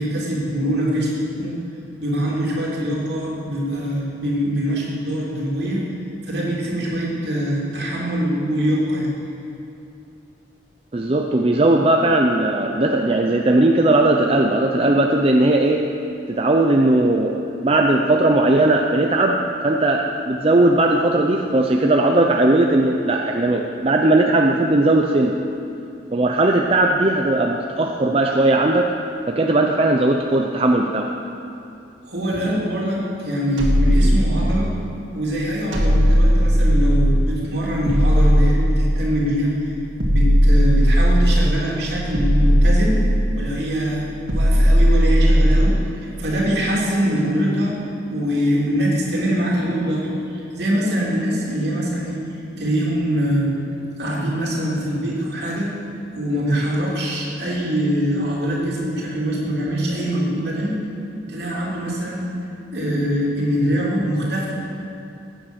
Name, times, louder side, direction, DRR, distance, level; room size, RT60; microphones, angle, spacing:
voice 1, 0.0-1.6 2.0-5.8 6.2-9.1 32.0-34.7 35.1-39.8 40.0-43.0 43.3-47.8 48.1-52.2 52.6-53.5 54.0-55.7 56.1-60.8 61.3-62.3 62.7-64.5, equal, 60° right, -5 dB, 3.3 m, -23 dB
voice 2, 10.9-15.8 16.3-19.4 19.6-25.4 26.1-28.9 29.3-31.1, right 2 dB, 30° right, 1 dB, 0.6 m, -18 dB
sound 1, 33.6-34.9 35.7-37.4 37.9-39.3 40.0-41.6 42.1-43.5 44.3-45.9, equal, 85° right, 2.3 m, -16 dB
15.0 x 9.1 x 6.4 m, 2.8 s
head